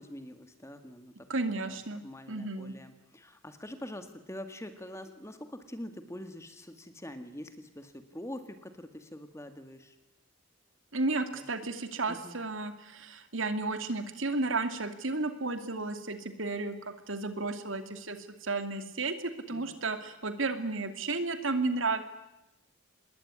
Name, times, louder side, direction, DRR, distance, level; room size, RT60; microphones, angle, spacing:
voice 1, 0.0-10.0 11.3-11.4 12.1-12.4 19.5-19.8, left 1 dB, 15° left, 9 dB, 2.0 m, -45 dB
voice 2, 1.3-2.0 2.3-2.7 10.9-19.1 19.5-22.0, right 3 dB, 75° right, 9 dB, 2.6 m, -33 dB
26.0 x 21.0 x 9.9 m, 0.93 s
head